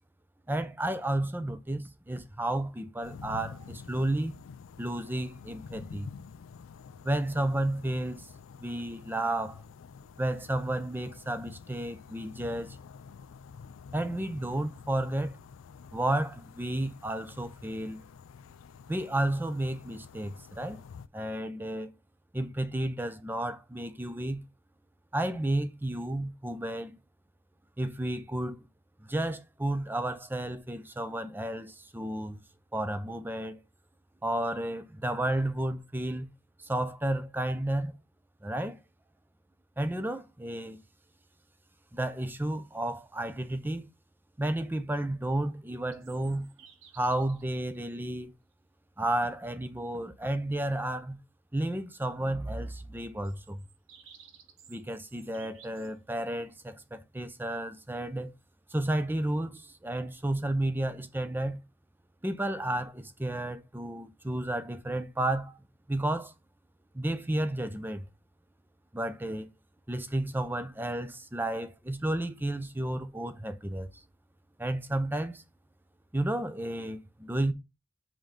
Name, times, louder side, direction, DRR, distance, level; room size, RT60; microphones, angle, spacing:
voice 1, 0.5-4.4 4.8-6.1 7.0-8.3 8.6-9.6 10.2-12.8 13.9-15.4 15.9-18.0 18.9-20.8 21.1-21.9 22.3-24.4 25.1-27.0 27.8-28.7 29.0-32.4 32.7-33.6 34.2-36.3 36.6-37.9 38.4-38.8 39.8-40.8 41.9-43.9 44.4-46.5 47.0-48.3 49.0-51.2 51.5-53.6 54.7-58.3 58.7-61.6 62.2-65.6 65.9-66.3 66.9-68.1 68.9-69.5 69.9-73.9 74.6-75.4 76.1-77.5, right 1 dB, 10° right, 0.6 m, -32 dB
sound 1, 3.0-21.1, left 6 dB, 85° left, 0.4 m, -49 dB
sound 2, 45.9-47.5 48.5-48.6 53.2-55.9, right 7 dB, 80° right, 1.1 m, -56 dB
5.1 x 3.8 x 5.3 m
head